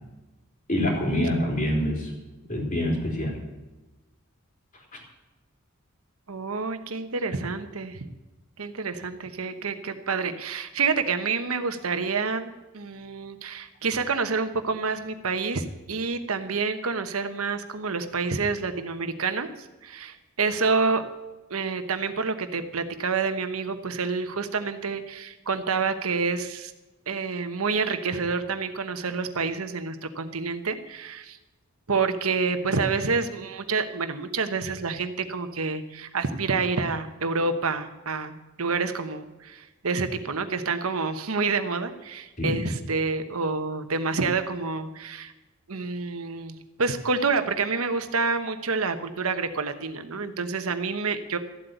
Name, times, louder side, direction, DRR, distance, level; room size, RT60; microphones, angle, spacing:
voice 1, 0.7-2.1 2.5-3.3 4.9-5.0 42.4-42.5, left 1 dB, 35° left, 0 dB, 3.7 m, -25 dB
voice 2, 6.3-8.1 8.6-19.5 19.8-21.0 21.5-26.7 27.1-31.4 31.9-45.3 45.7-51.4, right 4 dB, 80° right, 9 dB, 1.1 m, -28 dB
14.0 x 8.0 x 9.2 m, 1.1 s
head